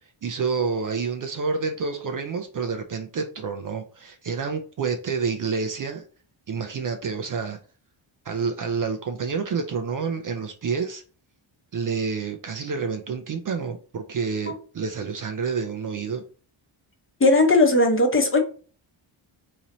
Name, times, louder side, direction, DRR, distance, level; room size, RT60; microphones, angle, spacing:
voice 1, 0.2-6.0 6.5-7.6 8.3-11.0 11.7-16.2, right 5 dB, 45° right, 5 dB, 0.4 m, -28 dB
voice 2, 17.2-18.4, left 2 dB, 25° left, 3 dB, 0.8 m, -18 dB
3.9 x 2.7 x 3.0 m, 0.39 s
cardioid pair, 110°, 49 cm